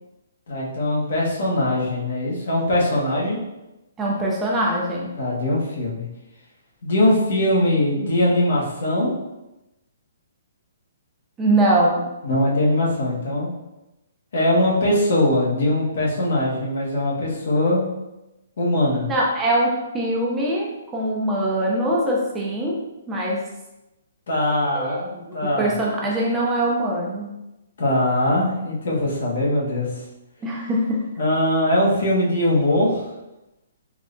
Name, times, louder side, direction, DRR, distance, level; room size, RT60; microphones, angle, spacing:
voice 1, 0.5-3.4 5.2-6.0 6.8-9.1 12.2-13.5 14.3-17.9 18.6-19.1 24.3-25.7 27.8-29.9 31.2-33.0, left 1 dB, 65° left, -5 dB, 1.2 m, -21 dB
voice 2, 4.0-5.1 11.4-12.1 19.0-22.8 23.1-23.4 24.7-25.2 25.6-27.3 30.4-31.0, right 1 dB, 10° right, -3 dB, 0.5 m, -22 dB
3.6 x 3.2 x 2.6 m, 0.97 s
hypercardioid pair, 160°, 0 cm